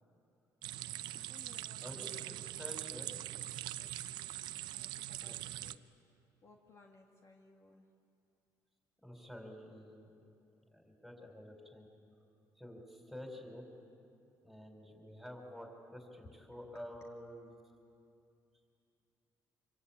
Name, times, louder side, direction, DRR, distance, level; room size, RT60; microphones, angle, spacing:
sound 1, 0.6-5.7, right 13 dB, 85° right, 0.6 m, -42 dB
voice 1, 1.1-2.2 3.8-4.4 4.7-5.8 6.4-7.9 16.4-16.8, left 3 dB, 40° left, 1 dB, 2.0 m, -62 dB
voice 2, 1.8-3.1 5.2-5.3 9.0-10.1 10.7-11.9 12.6-13.7 14.4-17.6, equal, ahead, 2 dB, 4.7 m, -49 dB
26.0 x 24.0 x 8.8 m, 2.5 s
cardioid pair, 120°, 8 cm